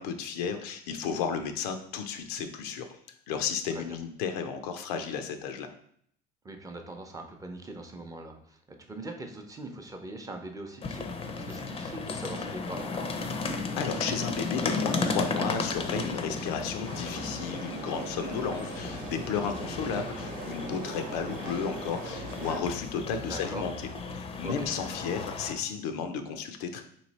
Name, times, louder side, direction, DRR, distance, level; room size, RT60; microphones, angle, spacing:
voice 1, 0.0-2.9 3.3-5.7 13.8-23.7 24.1-26.8, left 6 dB, 90° left, 7 dB, 0.5 m, -33 dB
voice 2, 6.4-8.6 8.9-11.1 11.4-13.1 23.3-23.7 24.4-24.7, right 2 dB, 15° right, 4 dB, 0.6 m, -41 dB
sound 1, 10.8-25.5, left 3 dB, 30° left, 0.5 m, -35 dB
sound 2, 16.8-22.6, right 3 dB, 45° right, 0.9 m, -40 dB
3.0 x 2.7 x 4.1 m, 0.66 s
supercardioid pair, 95°, 20 cm